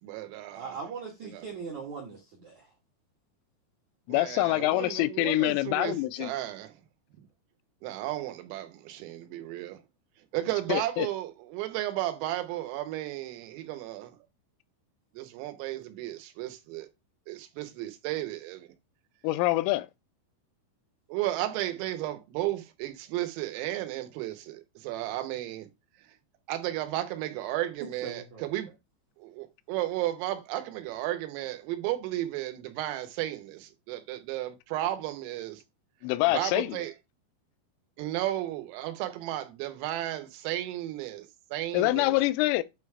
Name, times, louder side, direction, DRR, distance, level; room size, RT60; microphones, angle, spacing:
voice 1, 0.0-0.8 1.2-1.4 4.1-6.8 7.8-9.8 10.3-14.1 15.2-16.9 17.3-18.8 21.1-25.7 26.5-28.7 29.2-35.6 36.3-36.9 38.0-42.2, right 14 dB, 90° right, 3.6 m, -34 dB
voice 2, 0.5-2.7 28.0-28.5, right 5 dB, 75° right, 1.7 m, -40 dB
voice 3, 4.1-6.3 10.7-11.1 19.2-19.9 36.0-36.8 41.7-42.6, left 18 dB, 85° left, 3.1 m, -25 dB
9.1 x 3.3 x 4.7 m
omnidirectional pair, 5.8 m